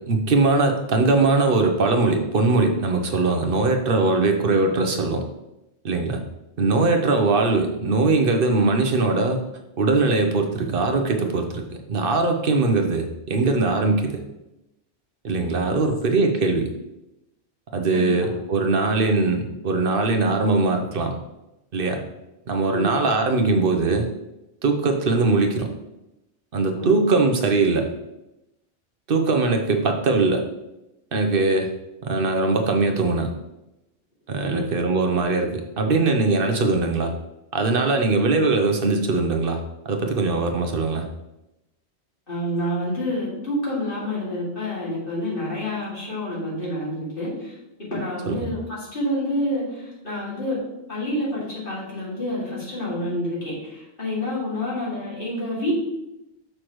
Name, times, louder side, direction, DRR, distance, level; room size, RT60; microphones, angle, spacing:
voice 1, 0.1-5.2 5.8-6.2 6.6-9.4 9.8-14.2 15.2-16.7 17.7-21.2 21.7-22.0 22.5-24.1 24.6-25.7 26.5-27.9 29.1-30.4 31.1-31.7 32.0-33.3 34.3-37.1 37.5-41.1 48.3-48.5, right 3 dB, 55° right, 5 dB, 1.0 m, -21 dB
voice 2, 42.3-50.6 50.9-55.7, left 1 dB, 55° left, -7 dB, 2.7 m, -28 dB
6.4 x 5.7 x 3.1 m, 0.92 s
omnidirectional pair, 1.1 m